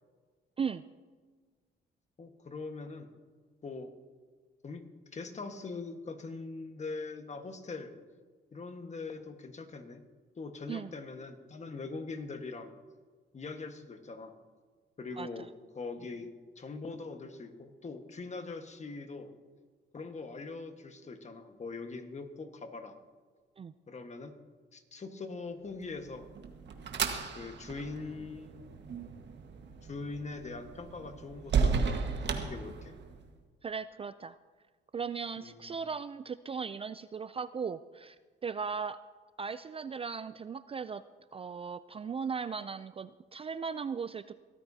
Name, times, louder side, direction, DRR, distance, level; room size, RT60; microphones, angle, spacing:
voice 1, 2.2-3.1 3.6-3.9 4.6-4.8 5.1-7.9 8.5-10.0 10.4-12.7 13.3-14.3 15.0-15.5 15.7-19.3 19.9-23.0 23.9-24.4 24.7-26.3 27.3-28.8 29.8-32.9 35.4-35.7, left 3 dB, 35° left, 7 dB, 1.4 m, -42 dB
sound 1, 25.9-33.3, right 5 dB, 60° right, 1.5 m, -34 dB
voice 2, 33.6-34.4 34.9-38.2 38.4-39.0 39.4-41.0 41.3-44.3, right 6 dB, 30° right, 14 dB, 0.4 m, -37 dB
22.5 x 13.5 x 2.8 m, 1.5 s
cardioid pair, 90°, 20 cm